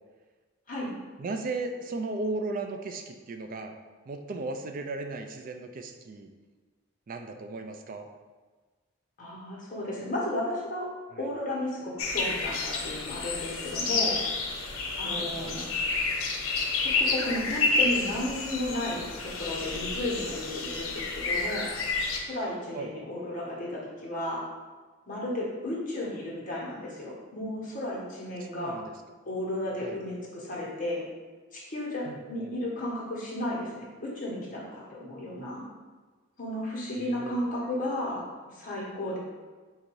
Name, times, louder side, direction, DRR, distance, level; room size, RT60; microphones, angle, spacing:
voice 1, 1.2-3.7 4.1-6.3 7.1-8.1 15.1-15.6 22.7-22.9 28.5-28.9 29.8-30.0 32.1-32.5 37.0-37.4, right 3 dB, 45° right, 6 dB, 0.4 m, -36 dB
voice 2, 9.2-10.9 11.2-14.1 15.0-15.6 16.8-21.7 22.1-24.4 25.0-28.7 29.3-31.1 31.5-35.6 36.4-39.2, left 1 dB, 40° left, -5 dB, 1.2 m, -33 dB
sound 1, 12.0-22.2, left 3 dB, 90° left, 0.6 m, -30 dB
3.9 x 2.6 x 4.5 m, 1.4 s
head